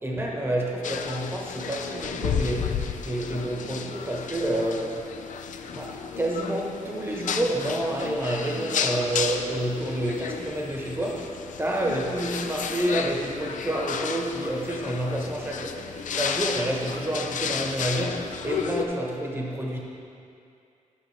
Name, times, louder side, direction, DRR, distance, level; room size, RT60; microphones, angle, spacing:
voice 1, 0.0-5.0 5.6-19.8, right 1 dB, 15° right, -2 dB, 1.1 m, -29 dB
sound 1, 0.8-18.9, left 6 dB, 70° left, 0.4 m, -33 dB
11.5 x 5.6 x 3.3 m, 2.5 s
wide cardioid pair, 140°, 14 cm